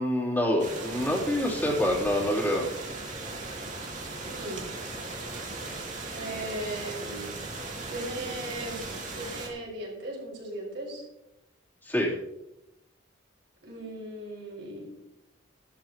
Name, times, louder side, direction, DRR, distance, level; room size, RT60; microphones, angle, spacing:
voice 1, 0.0-2.6 11.8-12.2, left 1 dB, 10° left, -5 dB, 3.4 m, -26 dB
sound 1, 0.6-9.5, right 3 dB, 40° right, 2.4 m, -38 dB
voice 2, 4.2-4.6 6.1-7.4 7.9-8.9 9.1-11.0 13.6-14.9, right 1 dB, 60° right, -4 dB, 5.3 m, -37 dB
14.0 x 12.5 x 3.0 m, 0.90 s
head